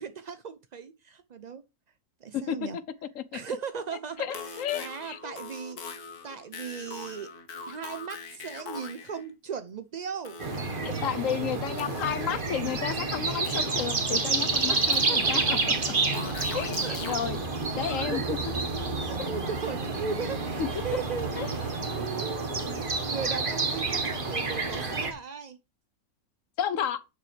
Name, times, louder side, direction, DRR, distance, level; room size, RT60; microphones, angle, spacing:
voice 1, 0.0-1.6 2.2-2.8 3.3-5.8 6.2-7.3 7.7-10.4 14.7-15.7 16.8-17.0 17.8-18.2 19.0-25.6, right 6 dB, 55° right, 0.4 m, -38 dB
voice 2, 2.3-2.8 3.1-3.4 4.2-5.4 10.8-15.6 16.5-17.4 17.8-18.4 19.2-19.3 20.6-20.7 21.3-21.5 26.6-27.0, left 9 dB, 65° left, 1.1 m, -32 dB
sound 1, 4.1-9.3 10.2-11.1 11.8-12.7 13.4-14.1 14.9-15.6 16.1-17.2, left 5 dB, 85° left, 1.7 m, -42 dB
sound 2, 10.4-25.1, right 3 dB, 35° right, 1.6 m, -29 dB
11.0 x 6.8 x 3.3 m
omnidirectional pair, 1.6 m